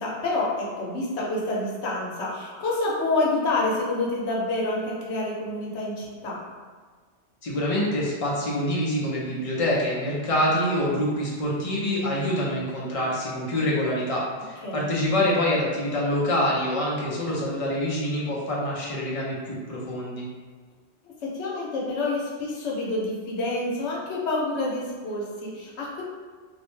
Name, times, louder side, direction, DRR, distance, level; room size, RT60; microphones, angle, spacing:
voice 1, 0.0-6.4 14.6-14.9 21.2-26.0, left 2 dB, 80° left, -4 dB, 1.0 m, -28 dB
voice 2, 7.4-20.2, left 1 dB, 40° left, -5 dB, 0.5 m, -26 dB
2.6 x 2.1 x 3.1 m, 1.5 s
omnidirectional pair, 1.2 m